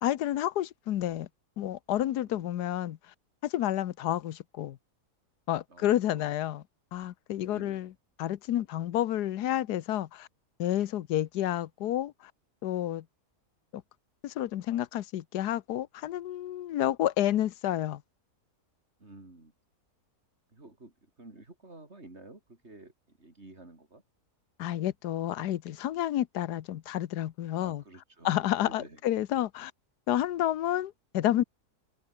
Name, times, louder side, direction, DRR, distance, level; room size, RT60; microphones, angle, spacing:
voice 1, 0.0-1.3 1.6-3.0 3.4-4.8 5.5-6.6 6.9-7.9 8.2-10.3 10.6-12.3 12.6-13.0 13.7-13.8 14.2-18.0 24.6-27.8 28.2-29.7 30.1-31.4, left 12 dB, 80° left, 1.4 m, -30 dB
voice 2, 7.4-7.9 19.0-19.5 20.5-20.9 21.2-22.9 23.2-24.0 27.5-29.0, right 2 dB, 40° right, 4.5 m, -51 dB
omnidirectional pair, 1.7 m